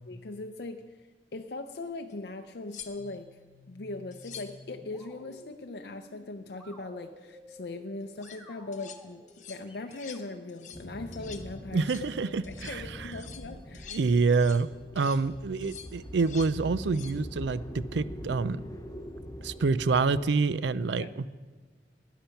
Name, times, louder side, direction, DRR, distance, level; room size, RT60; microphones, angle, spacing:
voice 1, 0.1-0.8 1.3-3.3 3.7-9.2 9.5-11.9 12.5-13.9 15.0-15.2 21.0-21.1, left 2 dB, 65° left, 5 dB, 0.6 m, -40 dB
sound 1, 2.1-2.2 2.7-3.3 4.1-4.6 8.0-8.4 8.7-9.0 9.3-9.6 9.9-10.2 10.5-10.9 11.1-11.5 11.8-12.1 12.4-12.8 13.1-14.7 15.0-15.2 15.6-16.6 16.8-17.2 19.8-20.0, left 8 dB, 40° left, 1.0 m, -47 dB
sound 2, 2.9-11.5, equal, 10° right, 1.5 m, -53 dB
sound 3, 10.7-20.2, equal, 20° left, 0.7 m, -43 dB
voice 2, 11.7-12.8 13.9-14.7 15.0-18.6 19.4-21.3, right 4 dB, 80° right, 17 dB, 0.4 m, -27 dB
13.5 x 10.0 x 5.8 m, 1.3 s
head